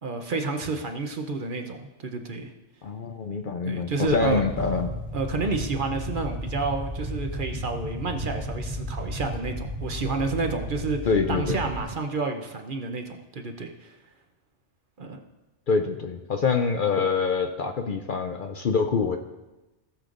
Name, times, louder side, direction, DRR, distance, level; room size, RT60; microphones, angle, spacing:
voice 1, 0.0-2.5 3.6-4.4 5.1-11.0 11.3-13.9 15.0-15.2, right 3 dB, 50° right, 5 dB, 0.8 m, -30 dB
voice 2, 2.8-4.9 11.1-11.6 15.7-19.2, left 5 dB, 55° left, 5 dB, 0.6 m, -25 dB
sound 1, 4.1-11.8, equal, 30° left, 1.3 m, -34 dB
17.5 x 6.8 x 2.5 m, 1.1 s
omnidirectional pair, 1.2 m